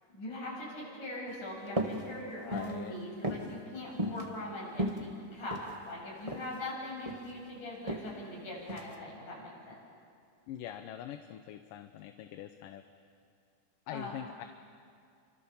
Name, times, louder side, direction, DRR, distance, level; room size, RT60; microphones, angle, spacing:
voice 1, 0.1-9.8 13.9-14.1, left 1 dB, 70° left, -3 dB, 9.2 m, -41 dB
sound 1, 1.7-2.0 2.4-2.8 3.2-3.5 4.0-4.2 4.7-5.7 6.3-6.5 6.8-7.3 7.9-8.1 8.7-8.9, right 1 dB, 20° right, 0.9 m, -34 dB
voice 2, 2.5-3.0 10.5-12.8 13.9-14.5, left 11 dB, 85° left, 8 dB, 2.6 m, -43 dB
30.0 x 26.0 x 7.2 m, 2.3 s
omnidirectional pair, 3.8 m